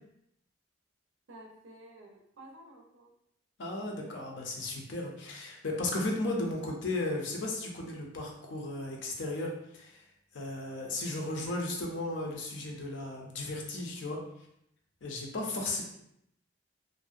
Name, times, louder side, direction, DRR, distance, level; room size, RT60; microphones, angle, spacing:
voice 1, 1.3-3.1 3.8-4.4, right 1 dB, 85° right, 0 dB, 0.5 m, -53 dB
voice 2, 3.6-10.0 10.3-14.2 15.0-15.8, left 2 dB, 65° left, 0 dB, 0.5 m, -35 dB
2.5 x 2.1 x 2.4 m, 0.77 s
head